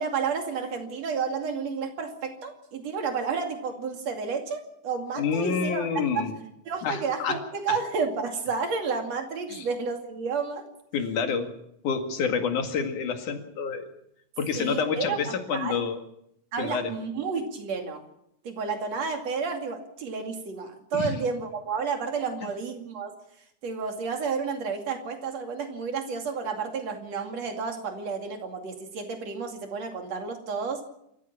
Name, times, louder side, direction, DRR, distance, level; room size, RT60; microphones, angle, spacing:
voice 1, 0.0-5.9 6.2-6.3 6.7-10.7 14.6-15.8 16.5-18.0 18.4-23.1 23.6-30.8, right 5 dB, 60° right, 5 dB, 3.6 m, -31 dB
voice 2, 5.2-6.3 6.8-7.4 9.5-9.7 10.9-11.5 11.8-13.9 14.4-16.0 16.6-16.9 20.9-21.2, left 6 dB, 85° left, 6 dB, 3.6 m, -28 dB
27.0 x 14.5 x 7.1 m, 0.77 s
omnidirectional pair, 3.5 m